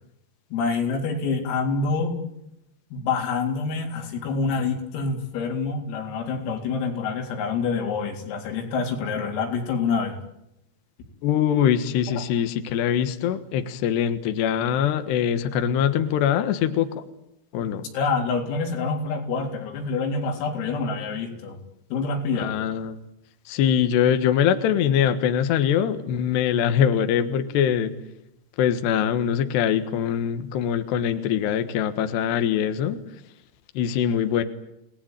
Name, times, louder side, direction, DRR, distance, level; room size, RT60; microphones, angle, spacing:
voice 1, 0.5-2.1 2.9-10.2 17.9-21.6 21.9-22.5, left 4 dB, 85° left, 2 dB, 6.4 m, -26 dB
voice 2, 11.2-17.0 17.5-17.9 22.4-23.0 23.5-27.9 28.6-33.0 33.7-34.4, left 9 dB, 65° left, 8 dB, 3.2 m, -23 dB
29.5 x 19.0 x 9.2 m, 0.85 s
omnidirectional pair, 5.9 m